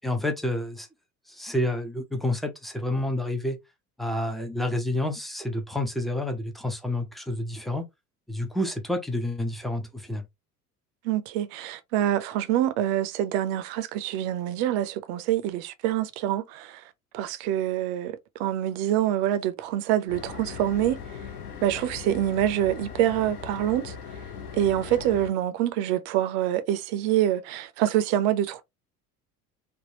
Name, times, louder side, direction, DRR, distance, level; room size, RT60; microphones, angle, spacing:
voice 1, 0.0-0.9 1.3-3.6 4.0-7.9 8.3-10.3, left 1 dB, ahead, 0.4 m, -29 dB
voice 2, 11.0-16.8 17.1-21.2 21.6-24.0 24.5-28.6, right 12 dB, 45° right, 0.6 m, -26 dB
sound 1, 20.1-25.3, left 7 dB, 75° left, 0.8 m, -39 dB
3.5 x 2.1 x 2.7 m
figure-of-eight pair, 65°, 46 cm